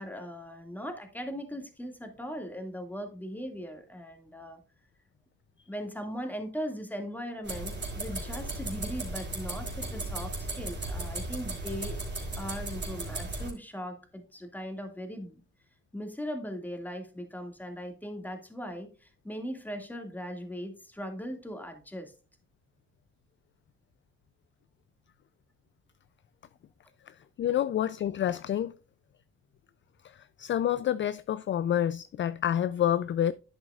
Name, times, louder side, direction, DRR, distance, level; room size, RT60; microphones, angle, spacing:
voice 1, 0.0-4.6 5.7-12.0 12.4-15.4 15.9-22.1, equal, 5° left, 2.1 m, -39 dB
sound 1, 7.4-13.5, right 2 dB, 35° right, 3.7 m, -36 dB
voice 2, 27.4-28.7 30.4-33.3, left 10 dB, 40° left, 0.4 m, -28 dB
10.5 x 8.1 x 2.4 m
cardioid pair, 90°, 30 cm